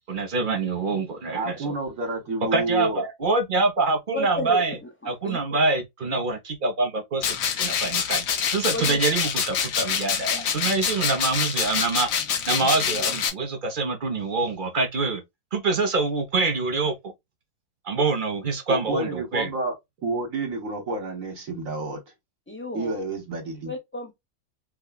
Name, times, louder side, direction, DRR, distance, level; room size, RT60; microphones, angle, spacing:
voice 1, 0.1-1.6 2.5-4.8 5.1-8.2 8.5-12.1 12.5-15.2 15.5-17.1 17.8-19.5, right 3 dB, 45° right, 0.8 m, -25 dB
voice 2, 1.3-3.0 18.7-19.7 20.0-22.0 22.7-23.7, right 2 dB, 60° right, 1.6 m, -29 dB
voice 3, 4.1-5.4 8.7-9.0 22.5-22.9 23.7-24.1, left 1 dB, 10° left, 0.8 m, -32 dB
sound 1, 7.2-13.3, left 7 dB, 65° left, 1.1 m, -26 dB
4.7 x 2.3 x 2.3 m
omnidirectional pair, 1.6 m